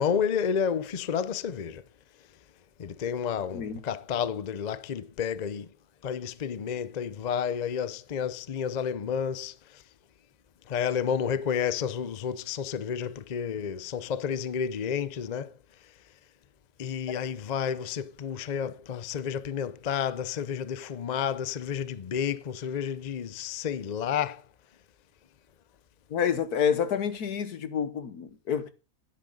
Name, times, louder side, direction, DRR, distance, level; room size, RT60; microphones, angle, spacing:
voice 1, 0.0-1.8 2.8-5.7 6.0-9.8 10.7-15.5 16.8-24.4, left 7 dB, 50° left, 0.5 m, -31 dB
voice 2, 3.5-3.8 17.1-17.3 26.1-28.7, left 7 dB, 75° left, 1.6 m, -28 dB
11.5 x 10.0 x 3.8 m
omnidirectional pair, 1.7 m